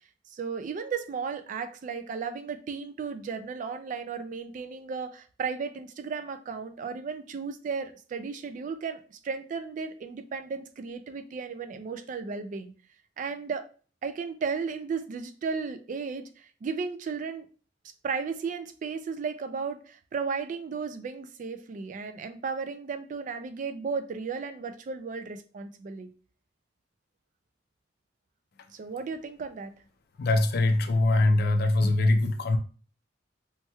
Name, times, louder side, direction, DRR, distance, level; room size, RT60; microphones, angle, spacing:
voice 1, 0.3-12.7 13.2-13.6 14.0-17.5 18.0-26.1 28.7-29.7, right 5 dB, 45° right, 9 dB, 0.3 m, -34 dB
voice 2, 30.2-32.6, left 2 dB, 55° left, 7 dB, 0.4 m, -23 dB
3.1 x 2.9 x 2.2 m, 0.39 s
head